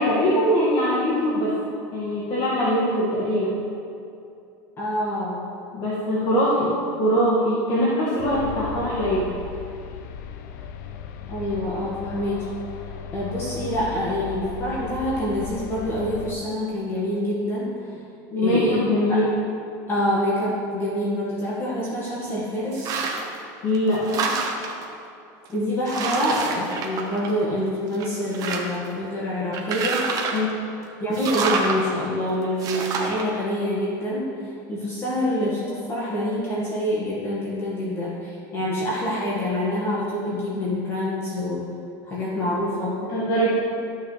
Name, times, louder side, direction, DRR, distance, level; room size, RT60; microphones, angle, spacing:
voice 1, 0.0-1.5 1.9-3.6 5.7-6.7 7.0-9.3 18.3-19.3 23.6-24.2 30.3-30.6 43.1-43.5, equal, 50° left, -8 dB, 1.9 m, -22 dB
voice 2, 4.8-5.4 11.3-12.5 13.1-18.0 18.4-18.8 19.1-19.3 19.9-23.0 25.5-30.3 31.0-41.6 42.1-43.0, left 1 dB, 25° left, -6 dB, 1.6 m, -26 dB
sound 1, 8.2-16.3, left 8 dB, 75° left, 0.6 m, -36 dB
sound 2, 22.7-23.4 23.7-24.8 25.4-25.5 25.9-27.6 27.9-28.9 29.5-30.5 31.1-31.8 32.6-33.2, right 4 dB, 40° right, 1.1 m, -27 dB
13.5 x 6.3 x 3.2 m, 2.7 s
supercardioid pair, 145°, 10 cm